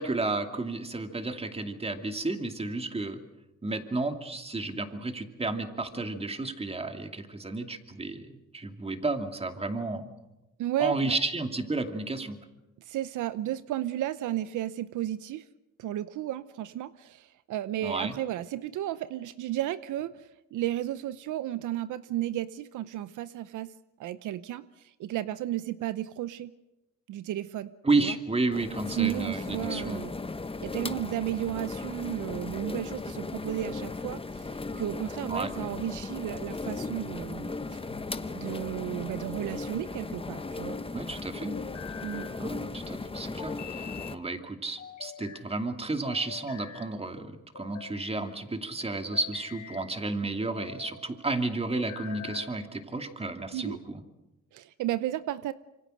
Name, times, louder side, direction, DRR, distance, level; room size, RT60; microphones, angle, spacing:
voice 1, 0.0-3.2 3.6-10.1 10.8-12.4 17.8-18.2 27.8-30.0 35.3-35.5 40.9-41.6 42.4-54.0, right 2 dB, 20° right, 6 dB, 2.6 m, -32 dB
voice 2, 10.6-11.2 12.8-15.5 15.8-23.7 24.0-26.5 27.1-27.7 28.0-28.2 28.9-30.1 30.6-37.8 38.3-40.8 42.0-42.3 53.5-53.8 54.5-55.5, right 13 dB, 80° right, 14 dB, 0.8 m, -33 dB
sound 1, 28.5-44.2, left 3 dB, 20° left, 1.1 m, -37 dB
sound 2, 37.9-38.6 39.9-40.7 41.5-42.3 43.4-44.2 44.8-45.4 46.0-46.9 47.5-48.2 48.9-49.9 50.4-50.9 51.7-52.5, left 8 dB, 80° left, 6.4 m, -45 dB
26.5 x 24.5 x 6.5 m, 1.0 s
cardioid pair, 90°, 30 cm